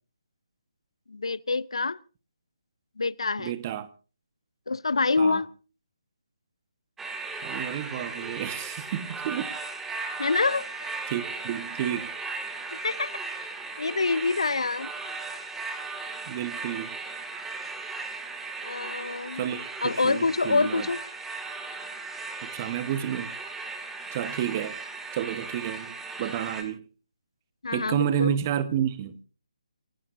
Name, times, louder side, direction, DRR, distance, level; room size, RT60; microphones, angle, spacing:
voice 1, 1.1-2.0 3.0-3.5 4.7-5.5 10.2-10.9 12.8-13.1 13.8-14.9 18.6-19.4 19.8-21.0 27.6-28.3, left 3 dB, 60° left, 0.7 m, -26 dB
voice 2, 3.4-3.9 5.2-5.4 7.4-9.5 11.1-12.1 16.3-17.0 19.4-20.9 22.4-23.3 24.1-24.8 25.1-26.8 27.7-29.2, right 10 dB, 25° right, 1.3 m, -30 dB
sound 1, 7.0-26.6, right 3 dB, 5° right, 2.2 m, -37 dB
28.5 x 17.0 x 2.7 m
figure-of-eight pair, 145°, 3 cm